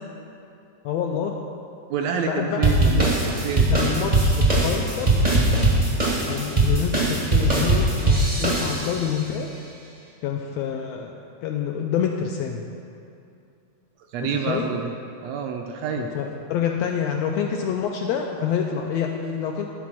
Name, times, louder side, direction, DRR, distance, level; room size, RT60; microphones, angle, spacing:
voice 1, 0.8-1.4 2.3-3.0 3.7-5.2 6.2-9.5 10.2-12.7 14.2-14.7 16.0-19.7, left 8 dB, 80° left, 2 dB, 1.5 m, -27 dB
voice 2, 1.9-3.1 3.4-3.7 14.1-14.9 15.2-16.2, right 6 dB, 80° right, 2 dB, 1.6 m, -27 dB
sound 1, 2.6-9.1, right 2 dB, 45° right, 0.5 m, -20 dB
11.5 x 4.2 x 6.0 m, 2.6 s
omnidirectional pair, 3.3 m